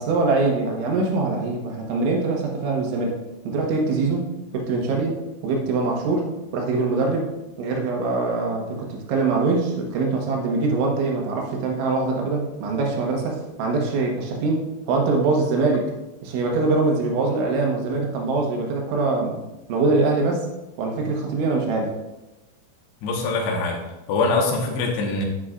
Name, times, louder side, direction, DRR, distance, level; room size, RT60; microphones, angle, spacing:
voice 1, 0.0-3.2 3.5-4.3 4.5-5.2 5.4-7.3 7.6-15.9 16.2-19.4 19.7-20.5 20.8-21.9, right 3 dB, 80° right, 0 dB, 3.8 m, -23 dB
voice 2, 23.0-23.8 24.1-25.3, left 3 dB, 70° left, 0 dB, 3.3 m, -23 dB
9.8 x 9.6 x 2.5 m, 1.0 s
omnidirectional pair, 5.3 m